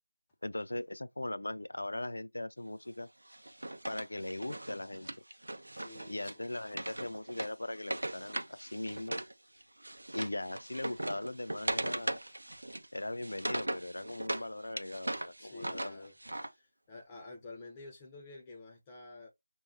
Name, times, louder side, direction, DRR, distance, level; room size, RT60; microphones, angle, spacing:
voice 1, 0.4-3.1 3.9-5.1 6.1-9.2 10.1-12.2 12.9-16.1, left 1 dB, 90° left, 0.3 m, -39 dB
Wood, 3.3-9.3 9.6-14.5 14.8-16.5, right 1 dB, 90° right, 0.6 m, -39 dB
voice 2, 5.8-6.3 15.4-16.1 16.5-19.3, left 2 dB, 10° left, 0.4 m, -50 dB
2.3 x 2.1 x 3.5 m
figure-of-eight pair, 175°, 0 cm